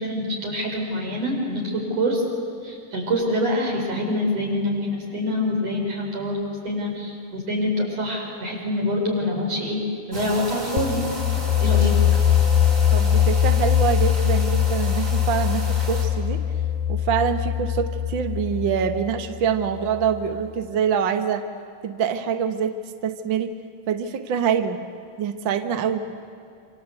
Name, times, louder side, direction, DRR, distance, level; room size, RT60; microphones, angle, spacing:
voice 1, 0.0-2.2 2.6-9.8 10.1-11.0 11.6-11.9 13.1-13.2, left 1 dB, 45° right, 0 dB, 6.2 m, -25 dB
sound 1, 10.1-16.1, right 1 dB, 20° right, 5.2 m, -34 dB
sound 2, 10.8-20.4, left 9 dB, 70° left, 2.2 m, -22 dB
voice 2, 12.9-16.4 16.9-21.4 21.8-22.7 23.0-23.5 23.9-24.8 25.2-26.0, right 7 dB, 80° right, 8 dB, 1.0 m, -25 dB
27.0 x 26.5 x 8.2 m, 2.5 s
omnidirectional pair, 4.2 m